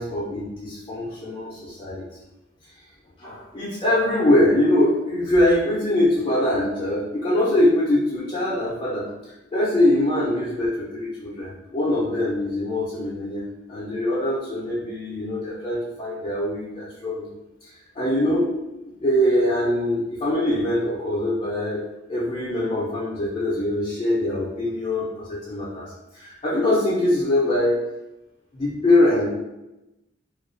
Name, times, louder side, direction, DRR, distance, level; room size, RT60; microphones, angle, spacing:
voice 1, 0.0-2.0 3.2-9.1 9.5-13.4 13.7-17.3 18.0-18.5 19.0-21.8 22.1-25.9 26.1-27.8 28.5-29.3, left 1 dB, 30° left, -7 dB, 0.4 m, -23 dB
2.4 x 2.2 x 2.4 m, 0.97 s
head